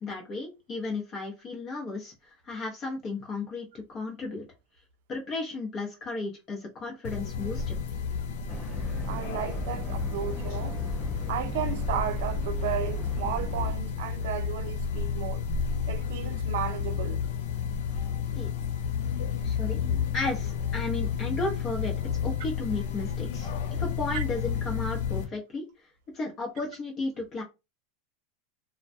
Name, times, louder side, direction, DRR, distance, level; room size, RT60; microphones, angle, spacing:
voice 1, 0.0-4.4 5.1-7.7 18.4-18.5 19.4-19.8 20.1-21.9 22.2-23.5 23.8-25.7 26.1-27.4, left 3 dB, 30° left, 0.7 m, -34 dB
sound 1, 7.0-25.2, left 7 dB, 65° left, 0.4 m, -31 dB
sound 2, 8.5-13.8, right 2 dB, 5° right, 0.4 m, -37 dB
voice 2, 9.1-10.8 11.3-15.4 15.9-17.2 24.1-24.2, right 10 dB, 70° right, 0.5 m, -34 dB
2.3 x 2.1 x 2.6 m
supercardioid pair, 135°, 0 cm